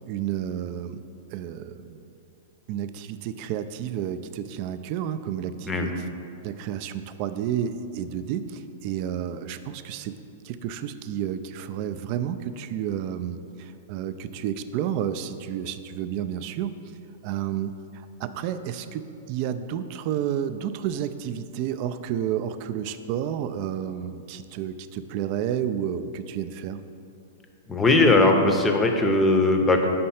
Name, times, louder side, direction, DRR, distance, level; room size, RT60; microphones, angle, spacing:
voice 1, 0.1-1.0 1.3-2.0 2.7-6.0 6.4-10.2 10.4-16.7 17.2-26.8, right 9 dB, 45° right, 11 dB, 0.3 m, -31 dB
voice 2, 27.7-29.9, left 2 dB, 15° left, 4 dB, 0.6 m, -19 dB
5.4 x 4.3 x 5.7 m, 2.7 s
hypercardioid pair, 130°, 0 cm